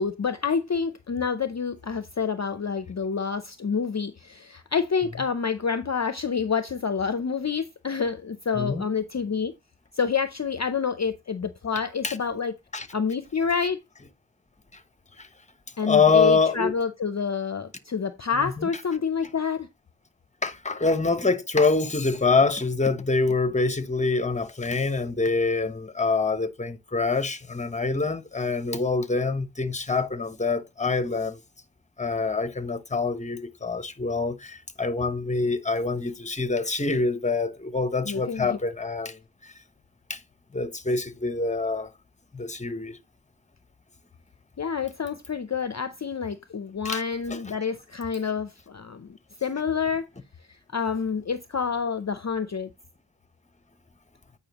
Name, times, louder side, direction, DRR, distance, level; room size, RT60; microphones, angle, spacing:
voice 1, 0.0-9.5 9.9-12.5 12.9-13.8 15.8-19.7 38.0-38.6 44.6-50.1 50.7-52.7, left 6 dB, 40° left, 0.6 m, -28 dB
voice 2, 8.6-8.9 12.0-12.2 12.7-12.9 14.7-14.8 15.2-15.3 15.8-16.7 18.3-18.7 20.4-31.4 32.0-39.5 40.1-40.2 40.5-41.9 42.3-43.0 46.8-47.0 47.3-47.4, left 4 dB, 15° left, 0.9 m, -25 dB
8.8 x 5.6 x 2.9 m
wide cardioid pair, 105°, 43 cm